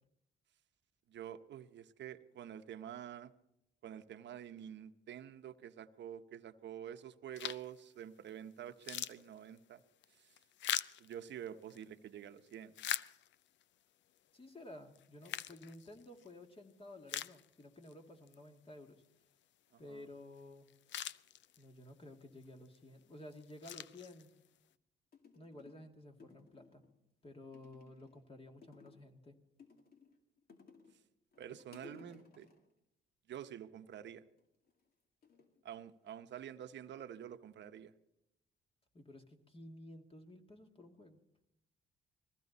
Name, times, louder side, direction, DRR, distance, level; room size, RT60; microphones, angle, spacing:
voice 1, 1.1-3.3 3.8-9.8 10.2-10.3 11.0-12.8 19.7-20.0 31.4-32.5 33.3-34.2 35.6-37.9, right 10 dB, 65° right, 9 dB, 1.0 m, -48 dB
sound 1, 7.3-7.8 8.3-8.4 8.7-11.8 12.4-13.6 14.2-14.3 15.0-16.3 16.7-16.8 17.1-17.9 18.3-18.4 20.4-20.5 20.7-21.8 22.4-22.8 23.3-24.6, left 11 dB, 65° left, 0.5 m, -42 dB
voice 2, 14.3-19.0 19.8-20.7 21.6-24.3 25.3-26.8 27.2-29.4 38.9-41.2, left 1 dB, 30° left, 3 dB, 2.2 m, -53 dB
sound 2, 25.1-25.9 26.2-27.0 27.5-28.2 28.6-29.2 29.6-31.0 31.3-32.7 34.3-34.7 35.2-36.3 36.6-37.1, left 4 dB, 50° left, 2.4 m, -60 dB
21.0 x 15.0 x 4.1 m, 0.84 s
cardioid pair, 90°, 20 cm